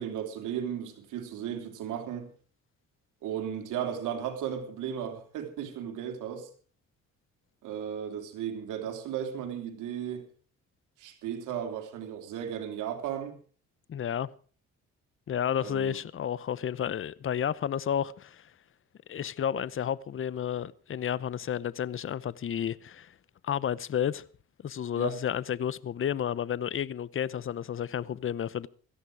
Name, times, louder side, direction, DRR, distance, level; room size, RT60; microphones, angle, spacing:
voice 1, 0.0-2.3 3.2-6.5 7.6-10.2 11.0-13.3 15.6-16.0 24.9-25.1, right 9 dB, 85° right, 3.4 m, -35 dB
voice 2, 13.9-14.3 15.3-18.5 19.1-23.1 23.4-24.2 24.6-28.7, left 9 dB, 45° left, 0.8 m, -31 dB
17.5 x 14.0 x 4.8 m
cardioid pair, 90°, 30 cm